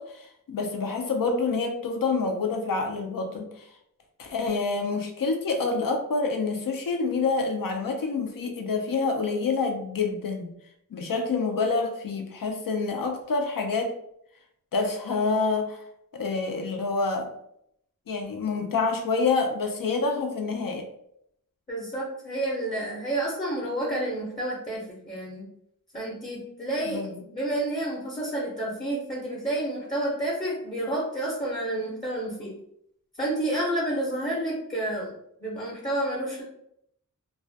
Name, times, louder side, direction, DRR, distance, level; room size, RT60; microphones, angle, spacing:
voice 1, 0.0-3.6 4.2-10.5 10.9-13.9 14.7-15.8 16.1-17.3 18.1-20.9 26.8-27.2, left 4 dB, 75° left, 4 dB, 0.5 m, -27 dB
voice 2, 21.7-25.5 25.9-32.5 33.2-35.1 35.4-36.4, right 1 dB, 25° left, -5 dB, 0.7 m, -30 dB
2.3 x 2.1 x 2.6 m, 0.74 s
wide cardioid pair, 65°, 34 cm